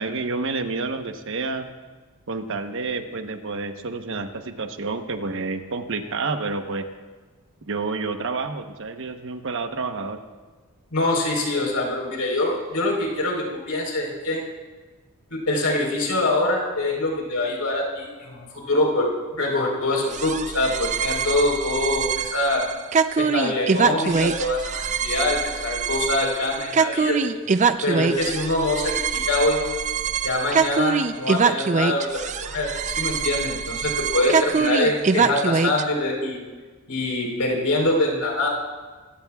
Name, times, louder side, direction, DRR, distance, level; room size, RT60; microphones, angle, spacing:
voice 1, 0.0-1.7 2.3-6.9 7.6-10.2, right 3 dB, 60° right, 7 dB, 1.0 m, -29 dB
voice 2, 10.9-14.4 15.3-22.7 23.2-27.2 27.8-29.6 30.2-32.7 32.9-36.4 36.9-38.5, left 2 dB, 85° left, -1 dB, 4.0 m, -24 dB
sound 1, 20.1-35.8, right 5 dB, 35° right, 0.4 m, -24 dB
23.5 x 16.0 x 2.4 m, 1.4 s
head